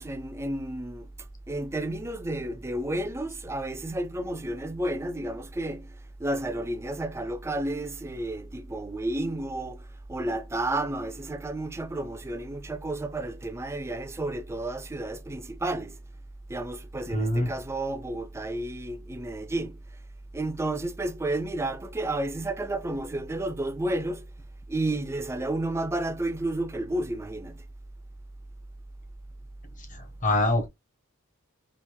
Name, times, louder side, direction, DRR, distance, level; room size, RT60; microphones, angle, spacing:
voice 1, 0.0-16.0 16.5-19.8 20.3-24.3 24.7-27.6, right 1 dB, 15° right, 0.4 m, -31 dB
voice 2, 17.1-17.5 30.2-30.7, left 1 dB, 40° left, 1.1 m, -24 dB
3.5 x 2.4 x 4.4 m
head